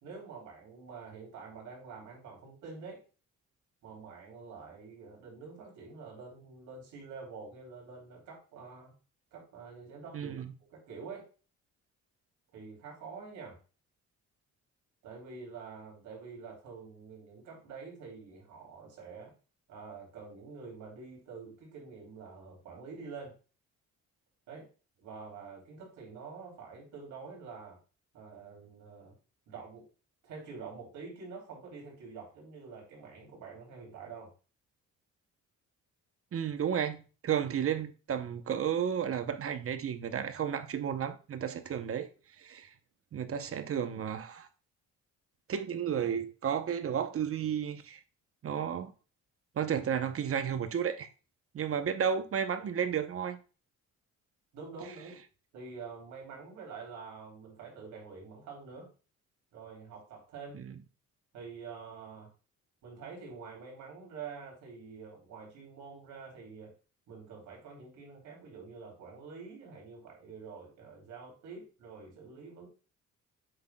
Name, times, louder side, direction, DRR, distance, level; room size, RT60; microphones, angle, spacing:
voice 1, 0.0-3.0 3.8-8.9 9.3-11.3 12.5-13.6 15.0-19.3 19.7-23.4 24.5-24.7 25.0-27.8 28.1-29.2 29.5-29.9 30.2-34.3 54.5-55.2 55.5-58.9 59.5-60.6 61.3-62.3 62.8-66.7 67.1-72.7, right 5 dB, 80° right, 3.5 m, -47 dB
voice 2, 10.1-10.5 36.3-42.1 42.4-42.7 43.1-44.5 45.5-48.0 48.4-48.9 49.6-51.1 51.5-53.4 60.5-60.7, right 8 dB, 50° right, 0.8 m, -32 dB
7.8 x 6.0 x 2.3 m
cardioid pair, 90°, 30 cm